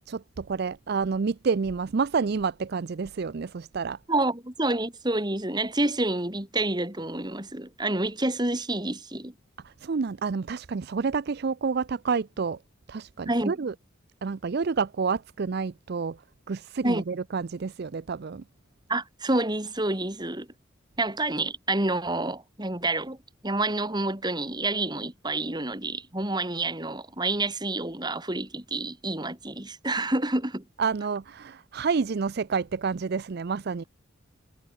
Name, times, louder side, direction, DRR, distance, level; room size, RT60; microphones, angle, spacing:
voice 1, 0.1-4.0 9.6-12.6 12.9-13.8 14.2-16.2 16.5-18.4 30.8-33.8, right 5 dB, 50° right, 0.5 m, -29 dB
voice 2, 4.1-9.3 13.3-13.5 16.8-17.0 18.9-20.5 21.0-23.2 23.4-30.6, right 2 dB, 20° right, 2.9 m, -28 dB
head